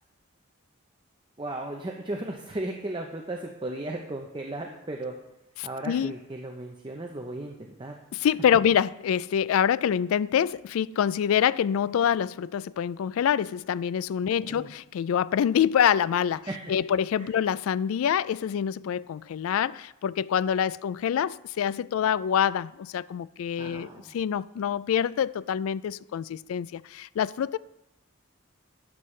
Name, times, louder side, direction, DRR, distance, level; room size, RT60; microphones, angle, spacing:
voice 1, 1.4-5.1 5.6-8.0 14.4-14.7 16.4-16.7 17.2-17.3 23.6-24.2, right 2 dB, 25° right, 0.7 m, -36 dB
voice 2, 5.6-6.1 8.1-27.6, left 8 dB, 85° left, 0.3 m, -26 dB
12.0 x 9.1 x 3.2 m
head